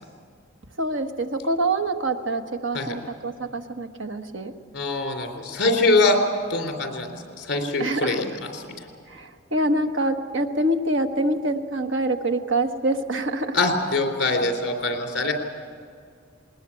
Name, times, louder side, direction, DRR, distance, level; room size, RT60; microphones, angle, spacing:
voice 1, 0.8-4.5 7.8-8.2 9.1-13.6, right 1 dB, 70° right, 6 dB, 1.3 m, -25 dB
voice 2, 4.7-6.2 6.5-8.2 8.5-8.9 13.5-15.3, left 2 dB, 55° left, 3 dB, 3.5 m, -23 dB
20.0 x 20.0 x 8.5 m, 2.2 s
head